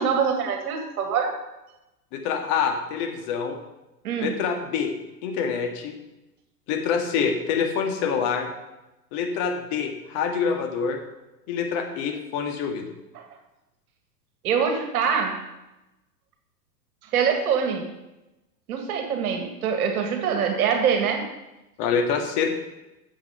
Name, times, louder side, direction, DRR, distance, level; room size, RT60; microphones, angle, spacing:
voice 1, 0.0-1.3 4.0-4.4 13.2-13.3 14.4-15.4 17.1-17.8 18.7-21.2, right 6 dB, 60° right, 4 dB, 2.0 m, -24 dB
voice 2, 2.1-3.6 4.2-4.9 5.2-6.0 6.7-8.5 9.1-11.0 11.5-12.9 21.8-22.5, left 6 dB, 45° left, 3 dB, 2.0 m, -26 dB
9.9 x 7.4 x 5.6 m, 0.99 s
hypercardioid pair, 100°, 48 cm